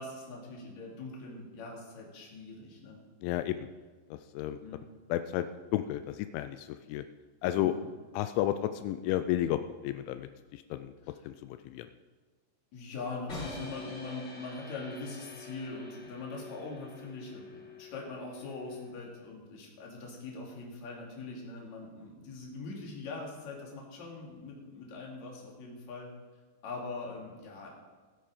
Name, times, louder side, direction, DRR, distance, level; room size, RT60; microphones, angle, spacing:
voice 1, 0.0-3.0 4.6-4.8 7.5-7.9 11.1-11.2 12.7-26.1 26.6-27.7, left 3 dB, 45° left, -2 dB, 3.4 m, -42 dB
voice 2, 3.2-3.7 4.1-4.6 5.1-5.5 5.7-7.0 7.4-7.8 8.1-10.9 11.2-11.9, left 13 dB, 85° left, 10 dB, 2.9 m, -32 dB
sound 1, 13.3-19.3, left 2 dB, 30° left, 4.0 m, -47 dB
19.0 x 8.7 x 5.0 m, 1.4 s
omnidirectional pair, 5.3 m